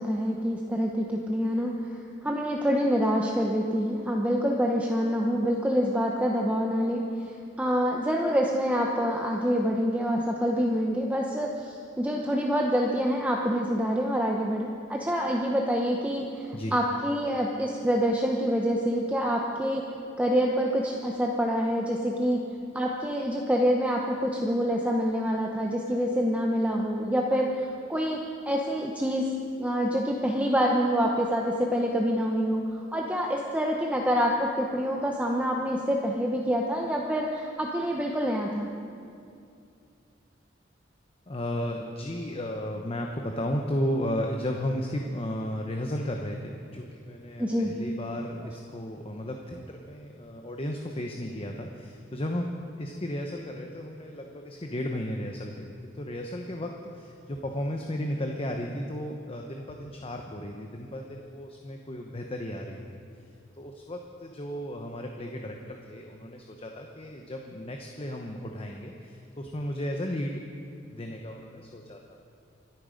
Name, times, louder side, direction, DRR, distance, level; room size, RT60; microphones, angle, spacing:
voice 1, 0.0-7.1 7.6-19.8 20.2-22.4 22.7-27.5 27.9-29.3 29.6-38.7 47.4-47.8, equal, 5° right, 0 dB, 0.8 m, -26 dB
voice 2, 41.3-52.5 52.8-63.0 63.6-70.4 70.9-72.3, left 1 dB, 30° left, 2 dB, 0.9 m, -34 dB
25.5 x 9.0 x 5.2 m, 2.5 s
head